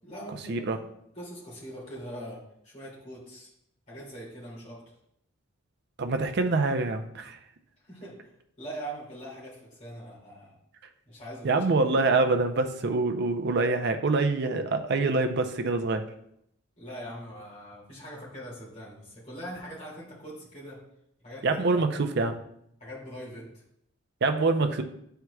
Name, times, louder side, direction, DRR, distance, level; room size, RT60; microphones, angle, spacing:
voice 1, 0.0-0.8 1.1-2.4 2.6-3.5 3.9-4.9 7.8-8.3 8.6-10.6 11.0-11.9 16.8-20.8 21.2-21.8 22.8-23.6, right 1 dB, 35° left, -6 dB, 2.5 m, -42 dB
voice 2, 6.0-7.4 11.4-16.1 21.4-22.4 24.2-24.8, right 3 dB, 55° right, 7 dB, 0.5 m, -25 dB
9.5 x 4.5 x 2.3 m, 0.74 s
head